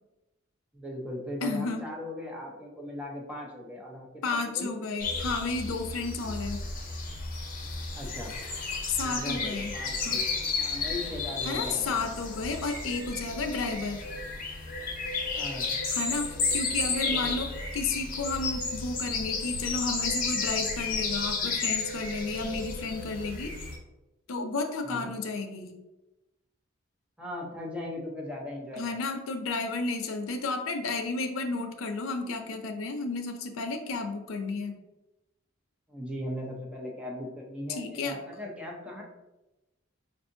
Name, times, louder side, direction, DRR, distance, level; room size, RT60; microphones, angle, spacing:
voice 1, 0.7-4.7 7.9-8.3 9.0-12.0 15.3-15.7 17.0-17.4 24.8-25.1 27.2-28.9 35.9-39.0, left 1 dB, 5° right, -2 dB, 0.6 m, -38 dB
voice 2, 1.4-1.8 4.2-6.6 8.9-9.7 10.0-10.2 11.4-14.1 15.9-23.6 24.3-25.7 28.8-34.7 37.7-38.2, left 3 dB, 85° left, 6 dB, 0.5 m, -32 dB
sound 1, 5.0-23.8, left 4 dB, 45° left, 0.7 m, -32 dB
4.8 x 2.6 x 2.6 m, 1.0 s
head